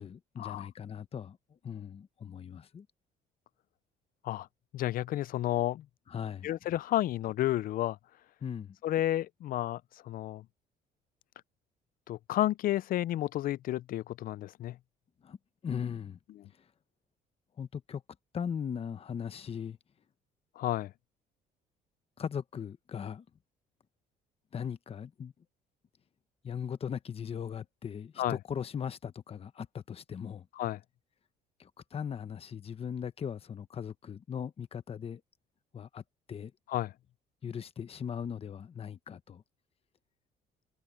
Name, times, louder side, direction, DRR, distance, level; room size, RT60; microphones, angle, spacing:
voice 1, 0.0-1.4 1.6-2.9 6.1-6.5 8.4-8.8 15.2-15.4 15.6-16.2 17.6-18.0 18.3-19.8 22.2-23.2 24.5-25.3 26.4-30.5 31.6-35.2 35.7-36.0 36.3-36.5 37.4-39.4, left 7 dB, 35° left, 1.0 m, -38 dB
voice 2, 4.7-5.9 6.4-8.0 8.8-10.5 12.1-14.8 16.4-16.5 20.6-20.9 28.2-28.4 30.5-30.8 36.7-36.9, left 14 dB, 55° left, 0.5 m, -31 dB
cardioid pair, 110°, 17 cm